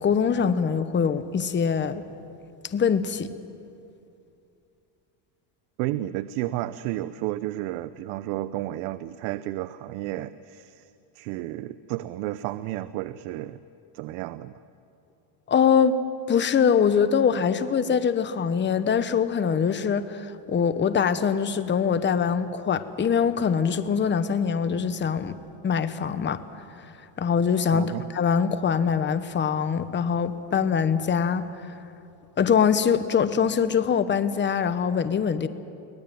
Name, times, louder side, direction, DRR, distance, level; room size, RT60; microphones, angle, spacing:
voice 1, 0.0-2.0 2.7-3.4 15.5-16.0 16.3-25.4 25.6-26.4 27.2-31.5 32.4-35.5, left 7 dB, 25° left, 12 dB, 1.0 m, -23 dB
voice 2, 5.8-10.9 11.1-13.6 13.9-14.5 27.7-28.1, right 15 dB, 85° right, 14 dB, 0.8 m, -32 dB
24.0 x 18.5 x 9.1 m, 2.6 s
cardioid pair, 125°, 47 cm